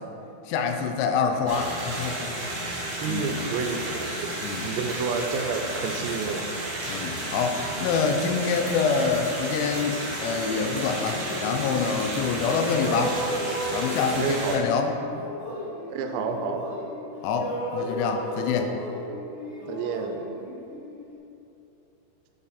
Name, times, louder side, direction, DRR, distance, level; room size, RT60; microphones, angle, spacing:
voice 1, 0.5-2.3 3.0-3.3 4.4-4.7 6.9-13.2 13.7-14.9 17.2-18.7, left 5 dB, 85° left, 5 dB, 2.6 m, -26 dB
sound 1, 1.5-14.6, right 1 dB, 60° right, 2.2 m, -32 dB
voice 2, 3.0-4.3 4.6-6.5 14.2-14.7 15.9-16.6 19.7-20.2, right 5 dB, 85° right, 5 dB, 2.7 m, -29 dB
sound 2, 11.0-12.4 12.7-17.1 17.3-21.2, equal, 60° left, 2.4 m, -34 dB
7.2 x 5.7 x 4.0 m, 2.9 s
omnidirectional pair, 5.0 m